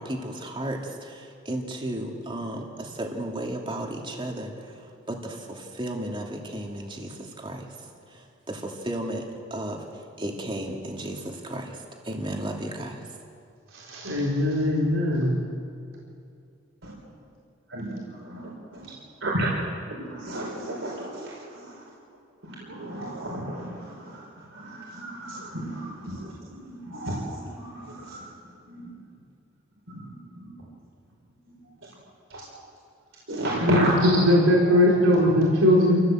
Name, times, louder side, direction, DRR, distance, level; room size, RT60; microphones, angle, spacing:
voice 1, 0.0-13.1, right 1 dB, 25° right, 0 dB, 2.6 m, -34 dB
voice 2, 13.7-15.4 33.5-36.0, left 1 dB, 85° right, -4 dB, 4.1 m, -20 dB
voice 3, 17.7-18.9 19.2-19.5 19.9-21.7 22.4-24.2 24.5-26.3 26.6-28.3 28.7-28.9 29.9-30.7 32.3-32.4 33.3-34.0 34.7-34.8, right 1 dB, 70° right, -4 dB, 4.7 m, -32 dB
28.0 x 16.0 x 7.7 m, 2.5 s
head